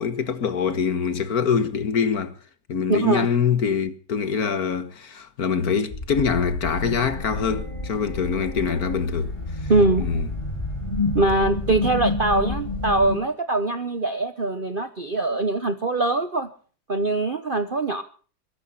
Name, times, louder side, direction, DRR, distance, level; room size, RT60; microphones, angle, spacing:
voice 1, 0.0-2.3 2.7-9.3 10.0-10.3, left 6 dB, 55° left, 1.8 m, -24 dB
voice 2, 2.9-3.3 9.7-10.2 11.1-16.5 16.9-18.0, right 2 dB, 35° right, 0.9 m, -22 dB
sound 1, 5.9-13.1, left 2 dB, 30° left, 2.0 m, -34 dB
sound 2, 6.8-13.2, left 3 dB, 15° left, 5.5 m, -31 dB
22.5 x 11.5 x 5.7 m
omnidirectional pair, 2.1 m